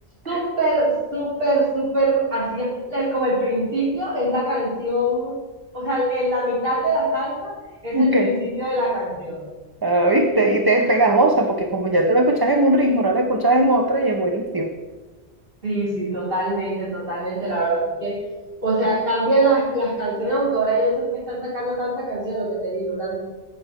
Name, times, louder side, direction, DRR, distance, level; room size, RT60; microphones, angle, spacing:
voice 1, 0.3-5.3 5.7-7.5 7.8-9.4 15.6-18.2 18.6-23.1, right 1 dB, 60° right, -6 dB, 3.8 m, -23 dB
voice 2, 7.9-8.3 9.8-14.7, right 1 dB, 25° right, 3 dB, 0.7 m, -19 dB
8.4 x 8.2 x 5.9 m, 1.2 s
omnidirectional pair, 1.1 m